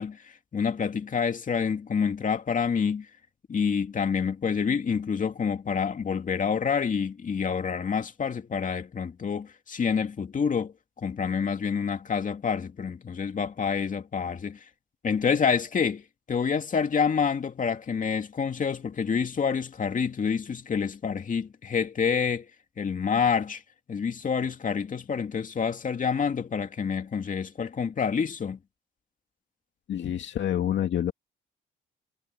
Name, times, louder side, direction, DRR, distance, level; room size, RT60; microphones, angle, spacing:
voice 1, 0.0-3.1 3.5-14.6 15.0-22.5 22.8-23.6 23.9-28.6, left 6 dB, 40° left, 2.5 m, -28 dB
voice 2, 29.9-31.1, left 10 dB, 70° left, 2.3 m, -27 dB
cardioid pair, 90°, 20 cm